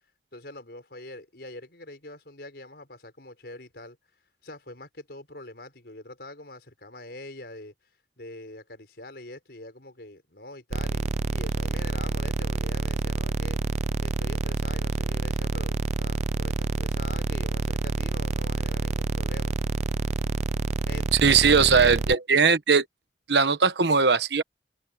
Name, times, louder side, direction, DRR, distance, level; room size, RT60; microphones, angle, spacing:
voice 1, 0.3-4.0 4.4-7.7 8.2-13.6 14.0-19.5 20.9-21.9, left 1 dB, 65° left, 5.2 m, -44 dB
sound 1, 10.7-22.1, right 3 dB, 40° right, 0.4 m, -28 dB
voice 2, 21.2-22.8 23.3-24.4, right 5 dB, 75° right, 1.1 m, -19 dB
head